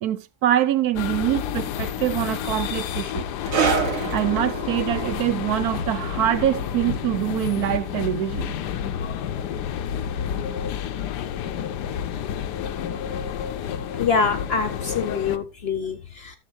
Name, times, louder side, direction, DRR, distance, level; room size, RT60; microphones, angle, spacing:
voice 1, 0.0-3.3 4.1-8.5, right 12 dB, 75° right, 1.2 m, -24 dB
sound 1, 1.0-15.4, left 9 dB, 80° left, 1.2 m, -30 dB
sound 2, 3.5-10.5 10.7-10.9 11.7-11.8, right 6 dB, 55° right, 1.6 m, -31 dB
voice 2, 14.0-16.4, left 5 dB, 50° left, 0.8 m, -25 dB
12.0 x 6.7 x 3.1 m
omnidirectional pair, 1.7 m